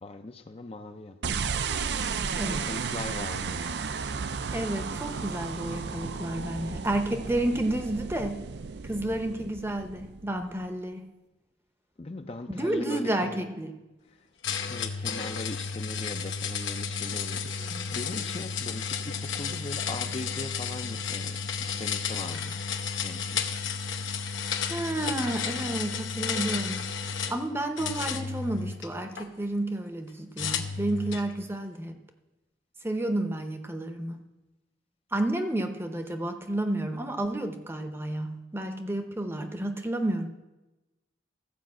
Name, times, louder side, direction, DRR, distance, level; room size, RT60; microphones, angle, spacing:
voice 1, 0.0-1.7 2.5-3.6 12.0-13.4 14.1-14.2 14.5-22.6 23.0-23.5 25.0-25.1, left 2 dB, 30° left, 7 dB, 0.5 m, -40 dB
sound 1, 1.2-10.6, right 5 dB, 65° right, 0.5 m, -34 dB
voice 2, 2.3-2.7 4.5-8.4 8.8-11.0 12.5-13.7 17.7-17.9 24.7-26.8 27.3-32.0 32.8-34.2 35.1-40.3, right 1 dB, 10° right, 6 dB, 0.7 m, -31 dB
sound 2, 14.4-27.4 27.8-29.3 30.4-31.3, left 6 dB, 85° left, 0.9 m, -32 dB
14.0 x 5.2 x 7.5 m, 1.1 s
head